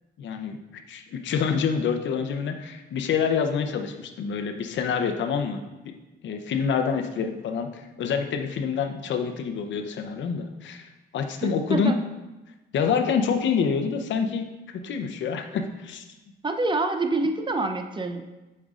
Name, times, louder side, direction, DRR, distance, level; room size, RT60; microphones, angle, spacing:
voice 1, 0.2-0.6 0.9-5.6 6.2-12.0 12.7-16.0, left 6 dB, 70° left, 6 dB, 0.7 m, -27 dB
voice 2, 11.4-12.0 16.4-18.2, right 2 dB, 25° right, 6 dB, 0.6 m, -26 dB
8.6 x 5.4 x 2.5 m, 1.1 s
cardioid pair, 90°, 20 cm